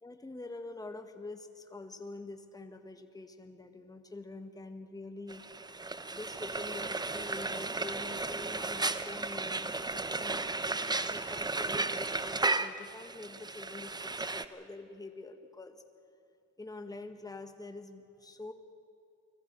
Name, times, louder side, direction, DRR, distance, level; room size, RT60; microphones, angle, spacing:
voice 1, 0.0-5.4 6.1-15.8 16.6-18.5, left 2 dB, 10° left, 7 dB, 1.5 m, -46 dB
Frying (food), 5.3-14.4, right 3 dB, 10° right, 0.8 m, -34 dB
20.5 x 14.5 x 8.9 m, 2.5 s
supercardioid pair, 95°, 37 cm